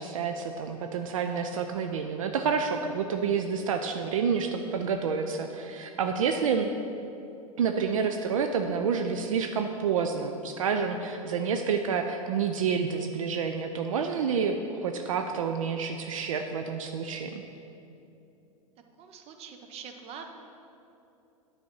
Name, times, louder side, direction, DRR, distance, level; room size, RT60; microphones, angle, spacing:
voice 1, 0.0-6.7 7.6-17.4, right 6 dB, 70° right, 5 dB, 0.5 m, -29 dB
voice 2, 19.0-20.3, right 6 dB, 35° right, 5 dB, 0.8 m, -44 dB
9.5 x 4.2 x 6.2 m, 2.8 s
figure-of-eight pair, 90°, 18 cm